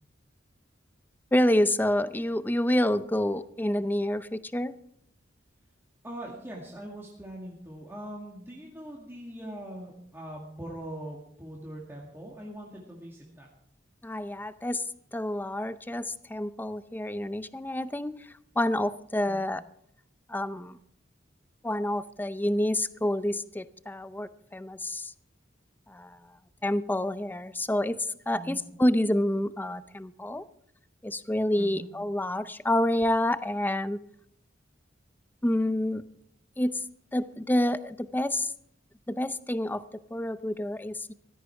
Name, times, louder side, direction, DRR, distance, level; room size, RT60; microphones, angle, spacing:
voice 1, 1.3-4.7 14.0-14.8 15.1-19.6 20.3-20.8 21.6-25.1 25.9-26.2 26.6-28.0 28.3-30.4 31.0-34.0 35.4-36.0 36.6-36.8 37.1-38.5 39.1-39.8 40.1-41.1, left 1 dB, 10° left, 14 dB, 0.6 m, -28 dB
voice 2, 6.0-13.5 19.2-19.5 28.3-28.6 31.6-31.9, right 1 dB, 15° right, -3 dB, 2.1 m, -41 dB
16.0 x 13.5 x 4.7 m, 0.71 s
head